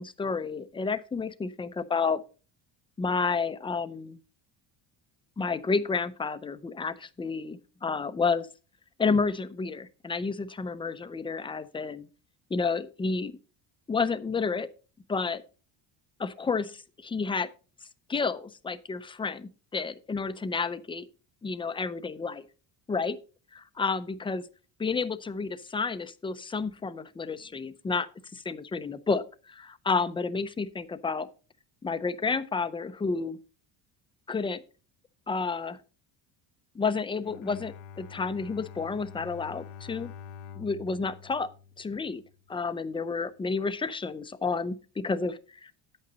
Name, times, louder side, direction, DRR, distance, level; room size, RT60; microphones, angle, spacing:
voice 1, 0.0-2.2 3.0-4.2 5.4-8.5 9.0-12.1 12.5-13.4 13.9-14.7 15.1-15.4 16.2-17.5 18.1-21.1 21.4-22.5 22.9-23.2 23.5-24.5 24.8-31.3 31.8-33.4 34.3-34.6 35.3-35.8 36.7-40.1 40.6-41.5 41.8-42.2 42.5-45.7, left 4 dB, 10° left, 13 dB, 0.5 m, -30 dB
Bowed string instrument, 37.2-42.5, left 7 dB, 80° left, 0.8 m, -46 dB
9.6 x 8.5 x 3.9 m, 0.35 s
cardioid pair, 125°, 46 cm